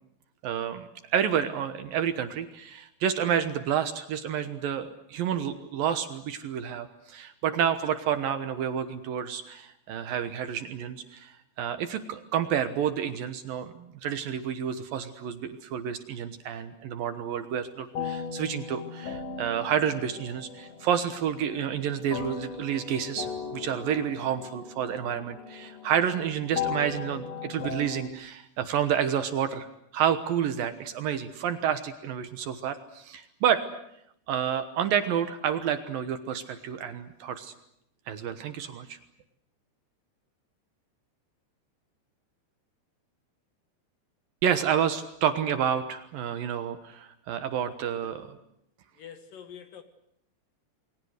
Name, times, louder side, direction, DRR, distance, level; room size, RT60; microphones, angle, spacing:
voice 1, 0.4-29.7 29.9-33.6 34.3-37.5 38.1-39.0 44.4-48.4, right 8 dB, 65° right, 10 dB, 2.6 m, -29 dB
sound 1, 17.9-28.1, left 6 dB, 45° left, 2.8 m, -38 dB
voice 2, 48.9-49.8, left 8 dB, 60° left, 9 dB, 2.9 m, -46 dB
29.0 x 22.0 x 8.1 m, 0.76 s
omnidirectional pair, 4.9 m